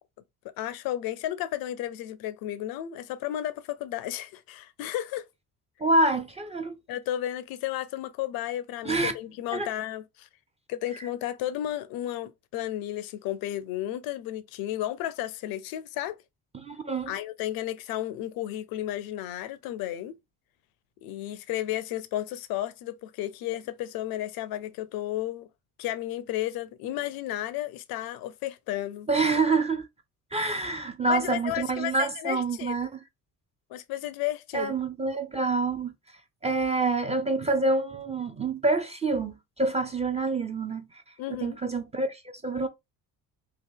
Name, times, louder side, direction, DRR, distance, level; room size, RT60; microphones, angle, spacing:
voice 1, 0.6-5.3 6.9-10.3 10.7-16.2 17.1-20.1 21.0-25.5 25.8-29.1 31.1-32.7 33.7-34.8 41.2-41.6, left 13 dB, 50° left, 0.4 m, -33 dB
voice 2, 5.8-6.8 8.8-9.1 9.5-9.7 16.5-17.1 29.1-29.9 30.3-33.0 34.5-35.9 36.4-41.0 41.3-42.7, right 3 dB, 15° right, 0.4 m, -27 dB
2.8 x 2.7 x 3.4 m
figure-of-eight pair, 50°, 48 cm